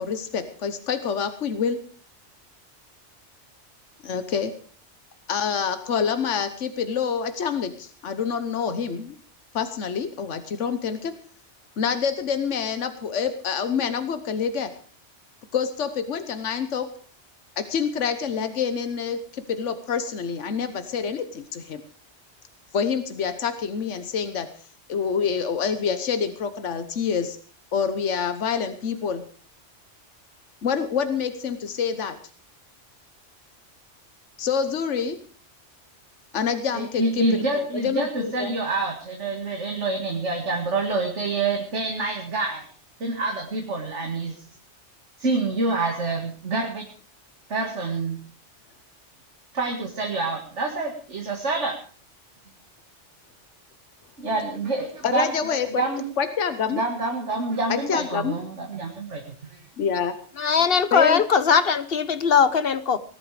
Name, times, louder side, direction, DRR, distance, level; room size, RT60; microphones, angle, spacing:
voice 1, 0.0-1.8 4.0-4.5 5.3-9.2 9.5-11.1 11.8-14.7 15.5-16.9 17.6-21.8 22.7-24.5 24.9-27.4 27.7-29.2 30.6-32.2 34.4-35.2 36.3-38.5 45.7-46.0 55.0-55.8 56.2-56.8 57.7-58.4 59.8-60.1 60.9-61.2, left 6 dB, 80° left, 10 dB, 1.4 m, -27 dB
voice 2, 36.7-42.7 43.0-44.3 45.2-46.9 47.5-48.2 49.5-51.8 54.2-55.3 55.8-56.0 56.7-59.2 59.5-59.6, right 3 dB, 75° right, 2 dB, 2.4 m, -27 dB
voice 3, 60.4-63.0, left 6 dB, 55° left, 14 dB, 1.2 m, -20 dB
19.0 x 11.5 x 5.0 m, 0.43 s
omnidirectional pair, 1.2 m